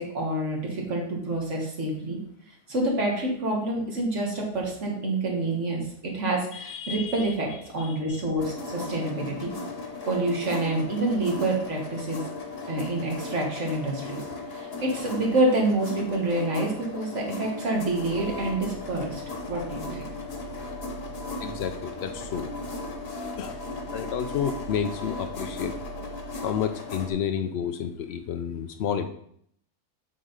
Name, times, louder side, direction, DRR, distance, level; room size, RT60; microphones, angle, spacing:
voice 1, 0.0-2.2 2.7-7.5 7.7-9.5 10.1-12.2 12.7-14.2 14.5-19.2 19.5-20.1, right 2 dB, 50° right, 0 dB, 1.9 m, -27 dB
voice 2, 6.5-7.3 7.8-8.2 21.4-22.5 23.4-23.6 23.9-25.7 26.4-29.1, left 8 dB, 80° left, 7 dB, 0.5 m, -31 dB
sound 1, 8.4-27.1, left 3 dB, 45° left, 1.2 m, -37 dB
sound 2, 17.7-27.4, right 4 dB, 10° right, 2.0 m, -44 dB
7.7 x 4.0 x 5.2 m, 0.68 s
omnidirectional pair, 1.6 m